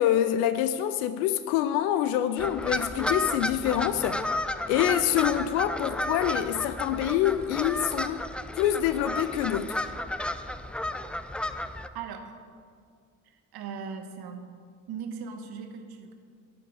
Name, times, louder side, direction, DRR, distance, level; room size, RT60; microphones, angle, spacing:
voice 1, 0.0-4.2 4.7-8.2 8.5-9.8, left 11 dB, 70° left, 0.6 m, -26 dB
sound 1, 2.4-11.9, left 1 dB, 5° left, 0.4 m, -32 dB
voice 2, 11.9-12.4 13.2-14.5 14.9-16.1, right 6 dB, 55° right, 1.3 m, -39 dB
11.5 x 5.8 x 8.6 m
figure-of-eight pair, 45°, 45 cm